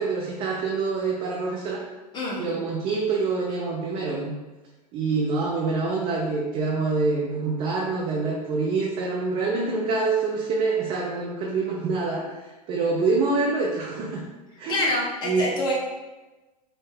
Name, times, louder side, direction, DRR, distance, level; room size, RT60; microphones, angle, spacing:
voice 1, 0.0-1.8 2.4-4.3 4.9-12.3 12.7-14.3 14.6-14.9 15.2-15.5, right 4 dB, 30° right, -2 dB, 0.6 m, -26 dB
voice 2, 14.7-15.7, left 1 dB, 20° left, -3 dB, 0.9 m, -26 dB
4.8 x 2.1 x 3.7 m, 1.1 s
figure-of-eight pair, 95°, 21 cm